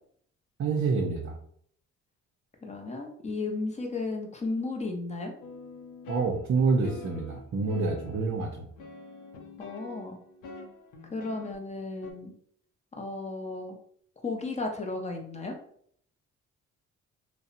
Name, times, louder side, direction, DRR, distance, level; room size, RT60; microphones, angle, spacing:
voice 1, 0.6-1.4 6.1-8.7, right 4 dB, 45° right, 1 dB, 0.5 m, -27 dB
voice 2, 2.6-5.3 9.6-10.2 11.1-12.3 12.9-13.8 14.2-15.5, left 3 dB, 25° left, 3 dB, 0.5 m, -34 dB
sound 1, 5.4-8.4 8.8-11.5 12.0-12.1, left 3 dB, 90° left, 0.5 m, -46 dB
2.7 x 2.0 x 2.5 m, 0.63 s
cardioid pair, 90°, 30 cm